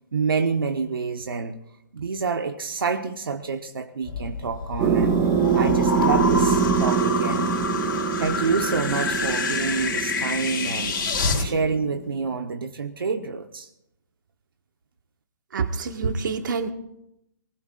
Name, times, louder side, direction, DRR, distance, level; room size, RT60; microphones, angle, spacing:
voice 1, 0.1-1.6 1.9-5.2 5.5-7.6 8.2-11.0 11.4-13.7, right 5 dB, 90° right, 5 dB, 1.2 m, -27 dB
sound 1, 4.0-11.5, left 4 dB, 80° left, 3.5 m, -28 dB
sound 2, 4.8-12.0, right 6 dB, 25° right, 1.5 m, -24 dB
voice 2, 15.5-16.7, right 5 dB, 65° right, 5 dB, 1.8 m, -26 dB
24.0 x 20.0 x 2.6 m, 0.83 s
hypercardioid pair, 160°, 11 cm